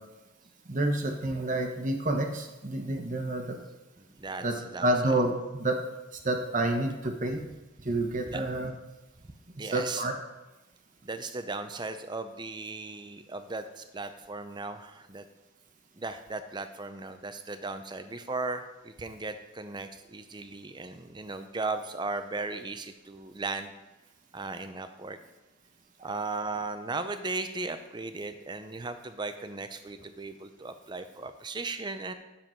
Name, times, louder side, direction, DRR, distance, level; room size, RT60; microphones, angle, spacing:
voice 1, 0.7-3.5 4.4-5.8 6.2-7.4 7.8-8.7 9.6-10.1, right 1 dB, 35° right, 4 dB, 1.1 m, -29 dB
voice 2, 4.0-4.9 8.3-8.4 9.6-10.1 11.0-15.3 16.0-23.7 24.3-25.2 26.0-32.1, right 3 dB, 20° right, 9 dB, 0.5 m, -37 dB
10.0 x 7.1 x 4.5 m, 1.1 s
head